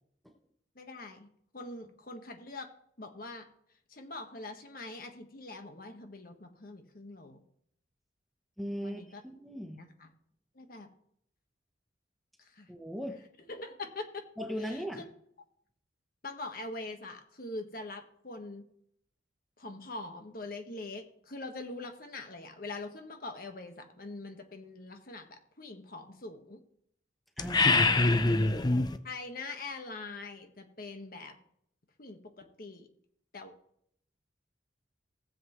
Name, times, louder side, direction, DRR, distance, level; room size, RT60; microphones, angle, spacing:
voice 1, 0.7-1.3 1.5-2.7 3.0-3.4 3.9-7.4 8.8-9.2 9.8-10.1 10.5-10.9 12.5-12.7 13.5-14.2 14.6-15.0 16.2-18.6 19.6-26.6 29.0-31.3 32.0-32.9 33.3-33.5, left 2 dB, 50° left, 5 dB, 1.3 m, -43 dB
voice 2, 8.6-9.0 9.4-9.8 12.7-13.2 14.4-15.1 27.4-28.4, equal, ahead, 3 dB, 0.9 m, -38 dB
sound 1, 27.4-29.0, left 3 dB, 20° left, 0.5 m, -24 dB
17.0 x 7.8 x 3.1 m, 0.69 s
head